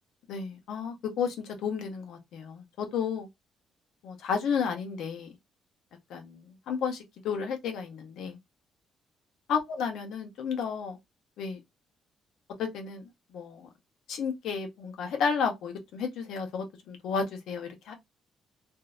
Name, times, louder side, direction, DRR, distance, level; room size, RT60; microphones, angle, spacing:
voice 1, 0.3-3.3 4.0-5.3 6.1-8.4 9.5-11.0 11.4-11.6 12.6-13.0 13.3-13.7 14.1-17.9, left 6 dB, 80° left, 0.8 m, -32 dB
2.7 x 2.0 x 2.4 m
cardioid pair, 90°, 0 cm